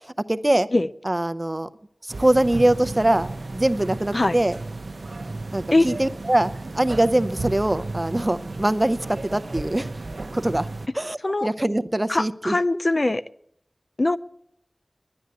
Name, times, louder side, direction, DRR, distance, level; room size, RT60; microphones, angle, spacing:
voice 1, 0.3-0.7 1.0-1.7 2.2-4.6 5.5-9.9 10.3-10.7 10.9-12.6, right 1 dB, 25° right, 12 dB, 0.6 m, -23 dB
sound 1, 2.1-10.9, right 2 dB, 70° right, 0.6 m, -34 dB
voice 2, 12.1-13.2 14.0-14.2, left 2 dB, 45° left, 14 dB, 0.4 m, -21 dB
10.5 x 10.5 x 8.2 m, 0.71 s
wide cardioid pair, 60°, 0 cm